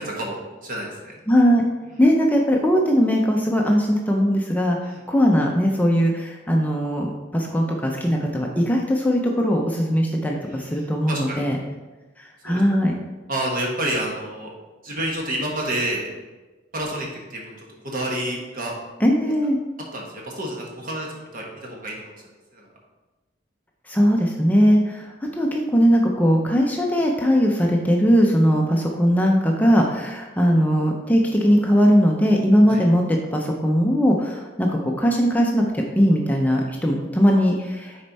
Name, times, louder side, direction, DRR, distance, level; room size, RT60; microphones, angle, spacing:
voice 1, 0.0-1.1 4.8-5.0 10.4-11.4 12.4-12.6 13.3-14.5 14.8-16.1 16.7-18.7 19.9-22.1 22.5-22.6 32.7-32.8, right 1 dB, 50° right, -1 dB, 1.4 m, -29 dB
voice 2, 1.3-1.6 2.0-11.6 12.2-13.0 19.0-19.6 23.9-33.0 33.3-38.0, equal, 10° left, 0 dB, 0.5 m, -19 dB
6.6 x 4.3 x 4.1 m, 1.2 s
head